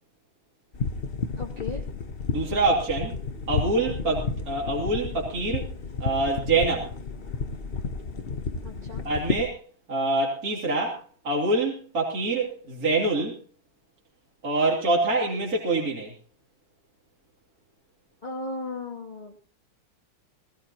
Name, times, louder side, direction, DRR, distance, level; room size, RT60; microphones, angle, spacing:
sound 1, 0.7-9.5, left 4 dB, 40° left, 0.8 m, -32 dB
voice 1, 1.4-1.8 8.6-9.0 18.2-19.4, left 3 dB, 20° left, -4 dB, 2.5 m, -36 dB
voice 2, 2.3-3.2 3.5-5.7 6.0-6.9 9.0-9.6 9.9-13.4 14.4-16.1, right 2 dB, 40° right, -2 dB, 3.5 m, -25 dB
19.0 x 18.0 x 3.0 m, 0.38 s
omnidirectional pair, 2.3 m